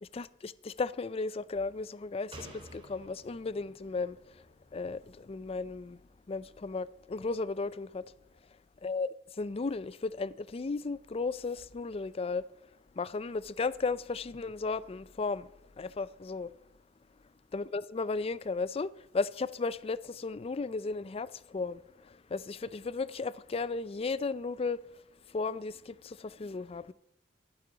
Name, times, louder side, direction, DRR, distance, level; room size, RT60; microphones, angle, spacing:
voice 1, 0.0-4.2 4.7-6.0 6.3-8.0 8.8-12.4 13.0-15.5 15.8-16.5 17.5-24.8 25.3-26.9, left 4 dB, 35° left, 0.4 m, -35 dB
Slam, 2.3-5.8 6.1-6.2, right 1 dB, 30° right, 3.1 m, -52 dB
12.0 x 11.5 x 5.1 m
head